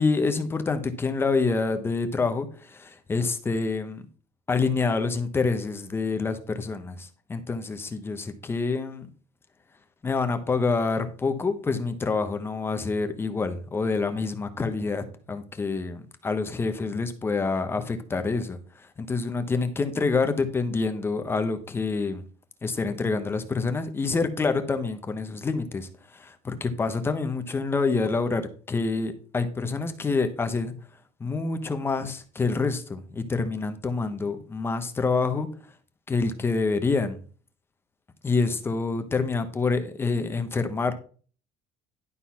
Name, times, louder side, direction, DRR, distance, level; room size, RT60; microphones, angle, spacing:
voice 1, 0.0-4.0 4.5-9.1 10.0-22.2 22.6-30.7 31.2-35.5 36.1-37.2 38.2-40.9, left 4 dB, 20° left, 1.1 m, -27 dB
11.5 x 4.1 x 5.7 m
cardioid pair, 140°, 12 cm